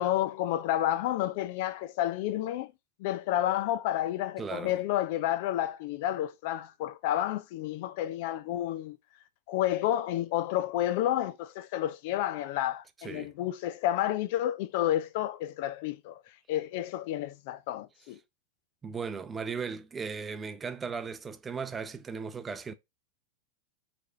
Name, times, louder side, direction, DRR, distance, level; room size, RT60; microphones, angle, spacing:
voice 1, 0.0-2.7 3.0-9.0 9.5-16.2 16.5-18.2, left 13 dB, 50° left, 0.4 m, -30 dB
voice 2, 4.4-4.8 13.0-13.3 18.8-22.7, right 5 dB, 20° right, 0.5 m, -37 dB
4.7 x 3.4 x 2.6 m
figure-of-eight pair, 90°, 0 cm